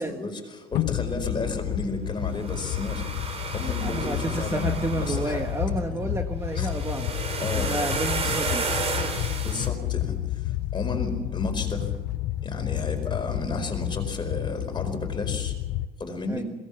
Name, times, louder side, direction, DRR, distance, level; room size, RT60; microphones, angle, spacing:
voice 1, 0.0-3.1 3.5-5.4 6.5-6.7 7.4-7.7 8.2-8.3 9.4-11.9 12.4-15.5 16.0-16.4, left 2 dB, 25° left, 4 dB, 4.9 m, -33 dB
sound 1, 0.7-15.9, left 14 dB, 90° left, 0.9 m, -30 dB
sound 2, 1.4-9.7, right 4 dB, 40° right, 3.5 m, -33 dB
voice 2, 3.8-7.2 7.5-8.7 16.3-16.4, right 2 dB, 15° right, 4 dB, 1.6 m, -30 dB
22.0 x 18.5 x 7.2 m, 1.2 s
cardioid pair, 110°, 17 cm